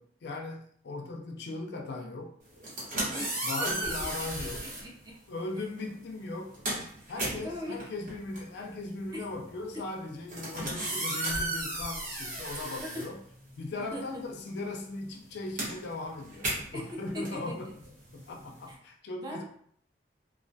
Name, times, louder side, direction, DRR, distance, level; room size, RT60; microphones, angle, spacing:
voice 1, 0.0-2.4 3.4-4.6 5.3-6.6 7.1-13.2 13.6-17.7 18.1-19.4, left 2 dB, 65° left, 2 dB, 0.4 m, -38 dB
sound 1, 2.5-4.9 5.8-6.0 6.3-13.8 14.1-18.7, right 1 dB, 45° right, 0.9 m, -35 dB
voice 2, 3.1-4.1 4.4-5.2 7.1-7.8 10.9-11.0 12.8-12.9 13.8-14.2 16.7-17.6 18.7-18.8 19.2-19.4, equal, 20° right, -2 dB, 0.5 m, -41 dB
2.2 x 2.1 x 2.6 m, 0.63 s
head